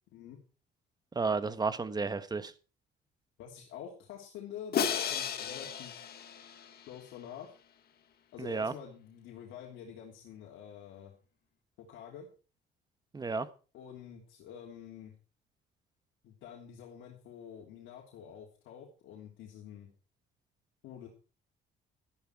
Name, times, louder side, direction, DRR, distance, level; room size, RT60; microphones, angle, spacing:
voice 1, 1.1-2.5 8.4-8.7 13.1-13.5, right 4 dB, 20° right, 12 dB, 1.2 m, -32 dB
voice 2, 3.4-6.0 6.9-7.5 8.3-11.1 11.8-12.3 13.7-15.2 16.2-19.9 20.8-21.1, left 8 dB, 80° left, -2 dB, 3.3 m, -47 dB
Crash cymbal, 4.7-6.9, left 8 dB, 55° left, 1.9 m, -34 dB
13.5 x 11.0 x 4.7 m, 0.36 s
cardioid pair, 115°, 20 cm